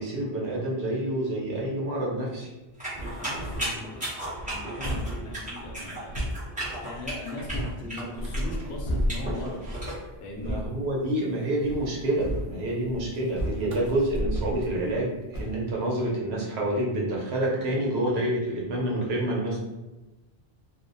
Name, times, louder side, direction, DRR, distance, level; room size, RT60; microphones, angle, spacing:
voice 1, 0.0-2.5 10.4-19.6, right 1 dB, 75° right, -2 dB, 1.0 m, -28 dB
sound 1, 2.8-10.0, right 1 dB, 10° right, 0.9 m, -35 dB
sound 2, 2.9-3.8 4.2-7.8 8.2-9.3 9.7-10.0 10.3-10.7 11.6-15.1 15.3-15.6, equal, 45° left, 0.4 m, -35 dB
voice 2, 3.0-6.2 6.8-9.6 10.2-10.6, left 1 dB, 75° left, -1 dB, 0.9 m, -39 dB
sound 3, 8.2-9.7 10.1-10.9 13.1-16.0, equal, 60° right, 0.3 m, -34 dB
2.6 x 2.0 x 2.5 m, 1.1 s
omnidirectional pair, 1.1 m